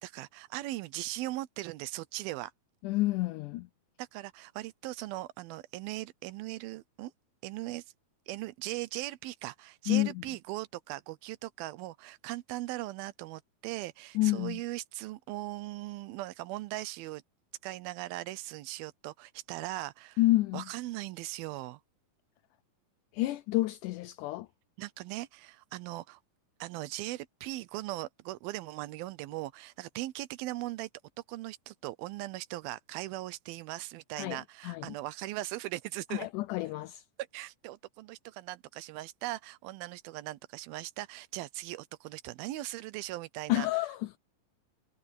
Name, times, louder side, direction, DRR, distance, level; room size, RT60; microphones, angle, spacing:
voice 1, 0.0-2.5 4.0-7.1 7.4-7.9 8.3-17.2 17.6-20.2 20.5-21.8 24.8-26.2 26.6-30.9 31.3-36.3 37.3-43.7, right 17 dB, 90° right, 2.6 m, -39 dB
voice 2, 2.8-3.7 9.9-10.2 14.2-14.6 20.2-20.7 23.1-24.5 34.2-34.9 36.1-37.0 43.5-44.2, left 17 dB, 85° left, 1.8 m, -29 dB
omnidirectional pair, 4.2 m